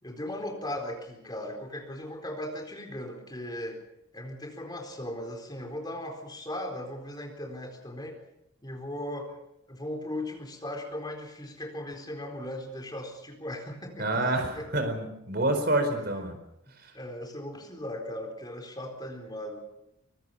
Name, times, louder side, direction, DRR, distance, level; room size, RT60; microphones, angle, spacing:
voice 1, 0.0-3.8 4.1-8.2 8.6-9.3 9.7-14.2 14.6-14.7 16.7-19.6, left 1 dB, 20° left, 3 dB, 4.1 m, -38 dB
voice 2, 14.0-16.4, right 2 dB, 50° right, 7 dB, 4.5 m, -27 dB
24.5 x 22.5 x 5.7 m, 0.81 s
head